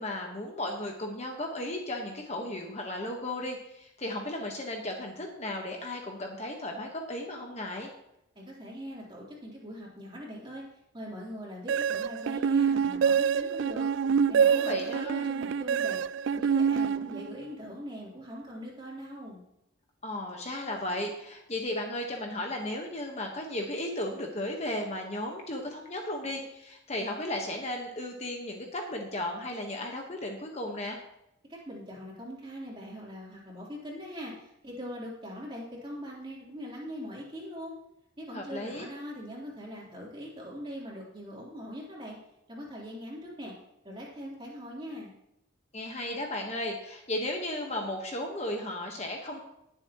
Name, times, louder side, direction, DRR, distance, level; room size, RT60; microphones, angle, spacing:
voice 1, 0.0-7.9 14.5-15.3 20.0-31.0 38.3-38.9 45.7-49.4, left 1 dB, 35° left, 2 dB, 1.3 m, -35 dB
voice 2, 8.4-10.6 10.9-13.9 14.3-16.0 16.3-19.4 31.5-37.7 38.2-42.2 42.5-43.5 43.8-45.1, equal, 25° right, -4 dB, 3.6 m, -41 dB
sound 1, 11.7-17.5, right 7 dB, 65° right, 0.3 m, -26 dB
20.0 x 7.5 x 3.0 m, 0.83 s
head